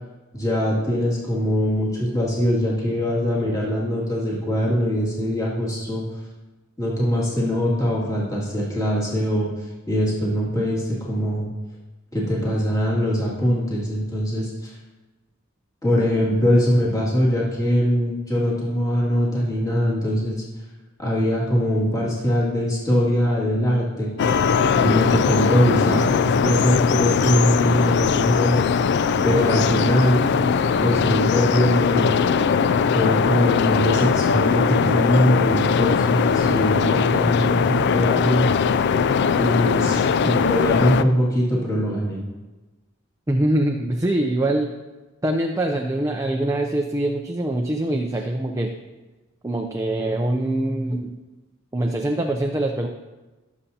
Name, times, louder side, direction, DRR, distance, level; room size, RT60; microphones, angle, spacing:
voice 1, 0.3-6.0 6.8-9.5 9.9-11.5 12.1-14.7 15.8-20.4 21.0-24.1 24.8-28.6 29.2-30.2 30.8-32.2 32.9-38.5 39.4-42.2, equal, 15° left, -6 dB, 2.3 m, -22 dB
sound 1, 24.2-41.0, left 6 dB, 55° left, 0.3 m, -20 dB
voice 2, 43.3-44.7 45.2-48.7 49.4-51.2 51.7-52.9, right 1 dB, 15° right, 3 dB, 0.5 m, -23 dB
17.0 x 7.2 x 2.8 m, 1.2 s
head